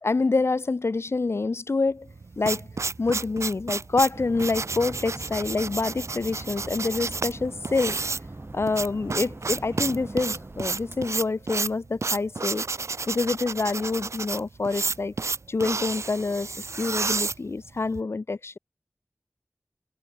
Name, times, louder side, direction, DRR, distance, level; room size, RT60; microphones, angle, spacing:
voice 1, 0.0-2.1 2.4-2.7 3.0-8.0 8.5-12.7 13.1-15.1 15.5-18.6, left 3 dB, 60° left, 0.5 m, -27 dB
sound 1, 2.1-18.0, right 4 dB, 75° right, 0.6 m, -31 dB
sound 2, 4.1-11.1, right 2 dB, 50° right, 3.8 m, -42 dB
wide cardioid pair, 45°, 5 cm